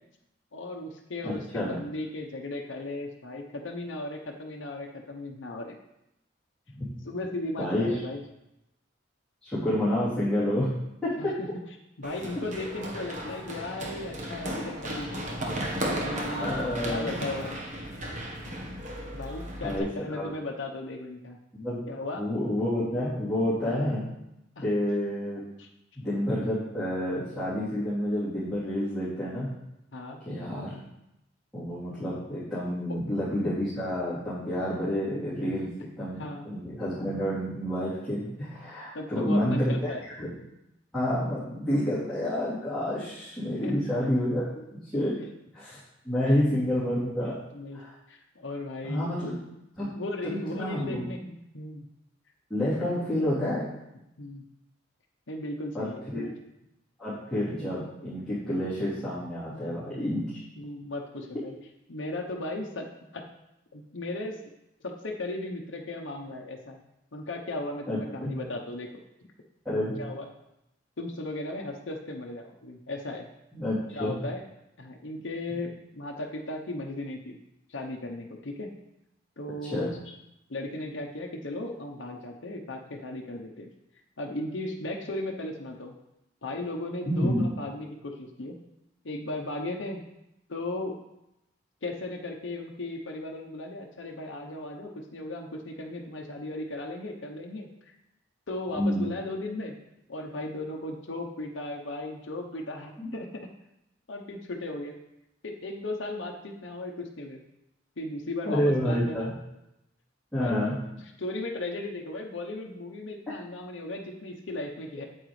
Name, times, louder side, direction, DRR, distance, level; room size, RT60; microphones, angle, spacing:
voice 1, 0.5-5.8 7.0-8.2 11.2-11.5 12.0-15.4 15.9-16.5 16.9-17.6 19.1-21.4 21.9-22.2 24.6-24.7 25.6-25.7 29.9-30.2 32.9-33.0 36.2-36.5 38.9-40.0 43.6-43.7 46.3-46.4 47.5-47.8 48.1-49.1 49.9-51.9 52.9-53.0 54.2-54.4 55.3-56.3 60.6-61.5 61.9-62.9 63.1-63.2 63.7-64.4 64.8-66.8 67.1-68.9 70.0-70.3 71.0-73.3 73.9-74.4 74.8-77.4 77.7-78.7 79.4-80.1 80.5-83.7 84.2-85.9 86.4-88.5 89.0-90.0 90.5-90.9 91.8-97.9 98.5-99.8 100.1-103.5 104.1-104.9 105.4-107.4 108.0-109.3 110.4-110.7 111.2-115.1, left 2 dB, 75° left, 0 dB, 0.8 m, -36 dB
voice 2, 1.2-1.7 6.7-6.8 7.6-7.9 9.4-10.7 11.0-11.3 16.4-17.3 19.6-20.3 21.5-21.8 22.2-24.0 24.6-25.4 25.9-29.5 30.2-30.8 31.5-40.3 40.9-44.4 44.8-45.2 45.5-45.8 46.0-47.3 47.7-47.9 48.8-49.4 49.8-49.9 50.2-51.0 52.5-53.7 55.7-56.2 57.0-60.4 67.9-68.3 69.6-69.9 73.5-74.2 75.5-75.6 79.7-79.9 87.0-87.4 98.7-99.1 103.0-103.1 108.4-109.3 110.3-110.8, left 1 dB, ahead, -14 dB, 3.2 m, -29 dB
Run, 12.0-19.8, equal, 40° right, 1.2 m, -35 dB
9.0 x 8.0 x 3.2 m, 0.87 s
head